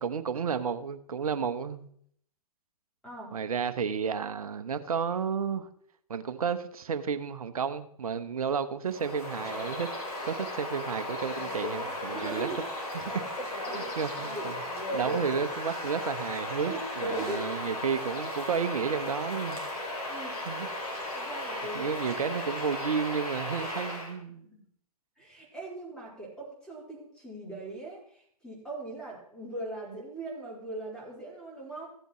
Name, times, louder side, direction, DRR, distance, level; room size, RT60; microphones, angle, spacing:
voice 1, 0.0-1.9 3.3-5.7 6.1-9.9 10.2-12.5 12.9-13.1 13.5-14.6 14.9-19.7 20.5-20.7 21.7-24.5, right 6 dB, 65° right, 11 dB, 0.9 m, -32 dB
voice 2, 3.0-3.4 12.1-12.6 13.1-13.2 13.7-15.2 16.6-17.6 20.0-20.4 21.1-21.9 24.5-24.6 25.2-31.9, right 2 dB, 5° left, -5 dB, 3.9 m, -39 dB
Bird vocalization bird call bird song, 8.9-24.1, left 1 dB, 75° left, 2.8 m, -36 dB
15.5 x 8.0 x 3.1 m, 0.64 s
figure-of-eight pair, 115°, 20 cm